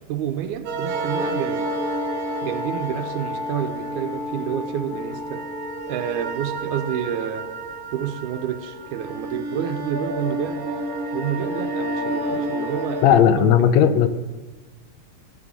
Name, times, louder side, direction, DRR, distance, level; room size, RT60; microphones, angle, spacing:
voice 1, 0.1-1.8 2.4-5.5 5.9-7.5 7.9-10.7 11.1-13.9, right 9 dB, 80° right, 8 dB, 2.0 m, -29 dB
sound 1, 0.7-13.2, right 1 dB, 55° right, 1.9 m, -29 dB
voice 2, 13.0-14.1, left 9 dB, 75° left, 11 dB, 1.8 m, -15 dB
14.0 x 7.5 x 6.6 m, 1.2 s
omnidirectional pair, 3.5 m